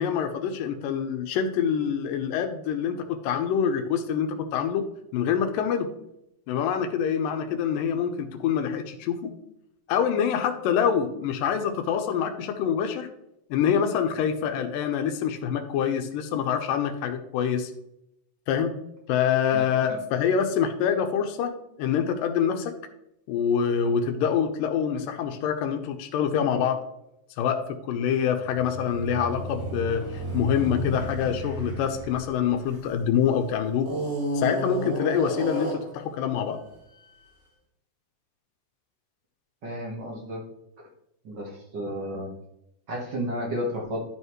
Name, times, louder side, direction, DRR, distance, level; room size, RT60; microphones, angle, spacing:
voice 1, 0.0-4.8 5.1-5.9 6.5-9.3 9.9-13.1 13.5-17.7 18.5-18.7 19.1-21.5 21.8-22.7 23.3-26.8 27.4-33.9 34.4-36.6, left 8 dB, 90° left, 7 dB, 2.4 m, -26 dB
sound 1, 28.4-33.2 33.8-36.0, equal, 65° right, 4.3 m, -32 dB
voice 2, 39.6-40.4 41.2-42.3 42.9-44.0, equal, 50° right, -1 dB, 1.4 m, -32 dB
12.0 x 5.6 x 3.1 m, 0.82 s
omnidirectional pair, 3.8 m